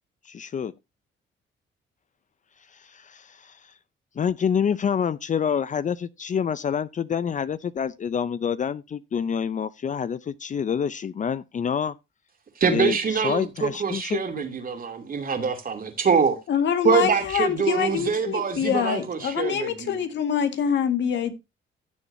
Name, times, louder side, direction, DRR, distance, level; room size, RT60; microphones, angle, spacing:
voice 1, 0.3-0.7 2.7-3.6 4.2-11.9 12.7-13.0 13.2-14.4, left 7 dB, 40° left, 0.5 m, -27 dB
voice 2, 12.6-16.4 16.8-20.0, right 6 dB, 45° right, 2.7 m, -24 dB
voice 3, 16.5-21.3, left 8 dB, 65° left, 1.8 m, -25 dB
16.0 x 7.0 x 2.7 m
cardioid pair, 90°, 20 cm